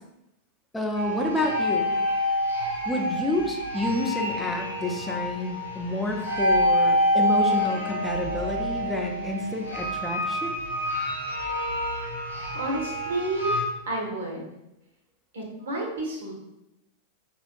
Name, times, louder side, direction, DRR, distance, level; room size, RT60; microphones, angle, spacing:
voice 1, 0.7-1.9 2.9-10.6, left 2 dB, 5° left, 1 dB, 0.5 m, -29 dB
sound 1, 0.9-13.6, equal, 85° right, 1.1 m, -27 dB
voice 2, 12.5-13.6 13.9-14.4 15.3-16.3, right 2 dB, 60° right, -1 dB, 1.0 m, -30 dB
4.9 x 2.4 x 2.3 m, 0.88 s
figure-of-eight pair, 90°, 0 cm